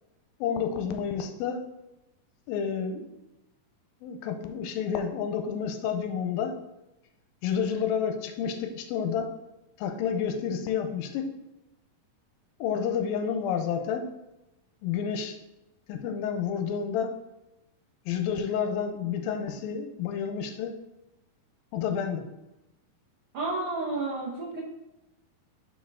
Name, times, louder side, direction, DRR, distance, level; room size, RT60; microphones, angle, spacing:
voice 1, 0.4-1.6 2.5-3.0 4.0-6.5 7.4-9.2 9.8-11.3 12.6-14.1 14.8-15.4 15.9-17.1 18.1-20.7 21.7-22.2, left 7 dB, 85° left, 6 dB, 2.4 m, -30 dB
voice 2, 23.3-24.6, right 2 dB, 90° right, -5 dB, 1.2 m, -31 dB
6.3 x 4.8 x 3.5 m, 0.92 s
omnidirectional pair, 4.1 m